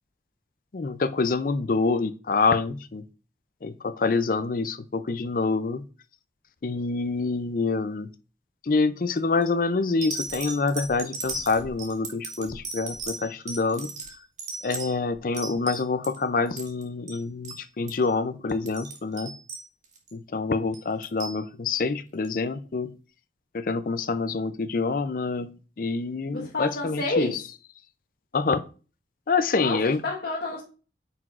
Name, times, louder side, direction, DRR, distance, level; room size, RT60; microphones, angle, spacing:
voice 1, 0.7-3.0 3.6-5.8 6.6-8.1 8.6-13.9 14.6-19.3 20.1-23.0 23.5-27.4 28.3-28.6 29.3-30.0, left 4 dB, 50° left, 0.5 m, -26 dB
sound 1, 9.2-9.4 10.0-16.2 16.5-17.2 17.4-17.6 17.9-18.1 18.5-20.1 20.7-21.4 22.2-22.3, right 3 dB, 40° right, 1.7 m, -36 dB
voice 2, 26.3-27.4 29.6-30.6, left 2 dB, 70° left, 1.4 m, -29 dB
9.2 x 6.0 x 2.5 m
head